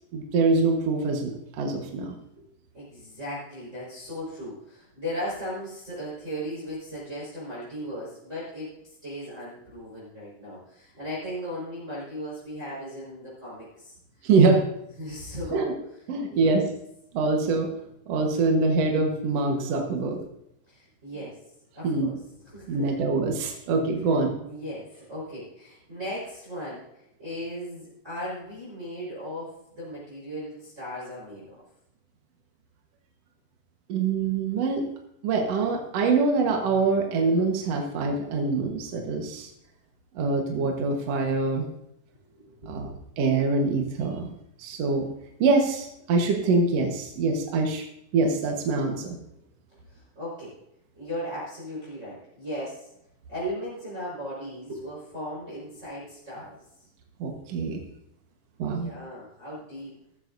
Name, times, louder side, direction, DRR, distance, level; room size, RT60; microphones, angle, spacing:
voice 1, 0.1-2.2 14.2-14.6 15.5-15.7 16.1-16.6 17.1-17.7 18.1-20.2 21.8-22.1 22.7-24.3 33.9-34.8 35.2-39.5 40.1-41.7 42.7-42.9 43.2-44.3 44.6-45.1 45.4-47.8 48.1-49.2 57.2-57.8 58.6-58.9, right 3 dB, 65° right, 1 dB, 1.7 m, -24 dB
voice 2, 2.7-8.8 9.0-14.3 15.0-15.7 16.3-16.6 20.7-21.4 21.7-23.0 24.4-31.6 42.4-42.7 49.9-50.5 50.9-52.9 53.3-56.6 58.7-59.9, equal, 15° right, -7 dB, 4.7 m, -37 dB
14.0 x 14.0 x 2.6 m, 0.79 s
omnidirectional pair, 4.7 m